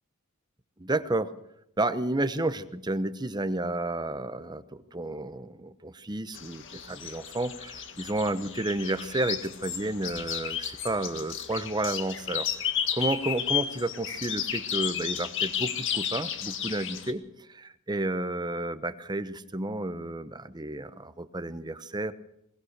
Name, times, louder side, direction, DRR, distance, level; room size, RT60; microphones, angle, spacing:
voice 1, 0.8-1.3 1.8-12.5 12.9-17.2 17.5-22.1, right 2 dB, 20° right, 12 dB, 0.9 m, -31 dB
sound 1, 6.3-17.1, left 8 dB, 60° left, 2.0 m, -33 dB
21.5 x 19.5 x 6.6 m, 0.80 s
head